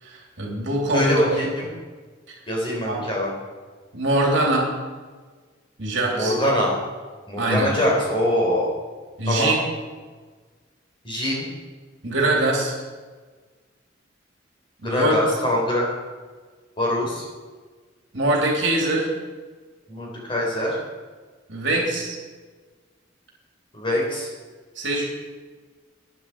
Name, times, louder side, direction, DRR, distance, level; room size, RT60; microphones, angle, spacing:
voice 1, 0.0-1.2 2.3-2.4 2.9-3.0 3.9-4.7 5.8-6.3 7.4-7.7 9.2-9.6 12.0-12.7 14.8-15.3 18.1-19.1 21.5-22.2 24.7-25.0, right 2 dB, 60° right, -1 dB, 3.2 m, -23 dB
voice 2, 0.9-1.7 2.5-3.3 6.1-6.7 7.3-8.7 9.2-9.6 11.0-11.5 14.8-15.9 16.8-17.2 19.9-20.8 23.7-24.3, left 1 dB, 25° left, -3 dB, 4.0 m, -23 dB
14.0 x 10.0 x 4.8 m, 1.4 s
head